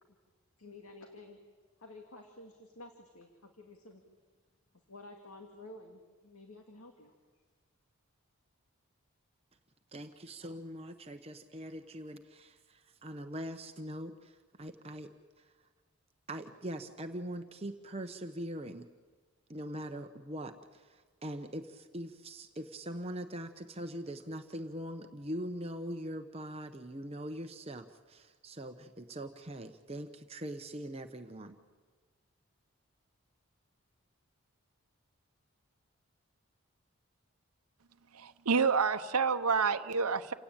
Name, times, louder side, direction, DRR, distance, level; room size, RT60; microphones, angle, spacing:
voice 1, 0.6-1.4 1.8-4.0 4.9-7.1, left 2 dB, 80° left, 3 dB, 2.2 m, -51 dB
voice 2, 9.9-15.6 16.3-18.9 19.5-31.6, equal, 25° right, 6 dB, 0.9 m, -42 dB
voice 3, 38.1-40.3, right 5 dB, 90° right, 9 dB, 0.9 m, -28 dB
28.5 x 17.0 x 9.0 m, 1.4 s
head